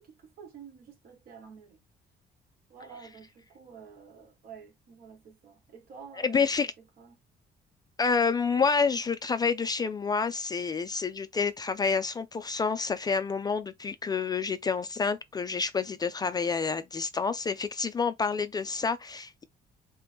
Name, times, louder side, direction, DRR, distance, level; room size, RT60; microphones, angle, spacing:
voice 1, 0.0-1.8 2.7-6.5 6.8-7.2, right 6 dB, 60° right, 1.5 m, -50 dB
voice 2, 6.2-6.7 8.0-19.4, left 5 dB, 25° left, 0.3 m, -28 dB
3.8 x 2.9 x 3.4 m
cardioid pair, 150°, 17 cm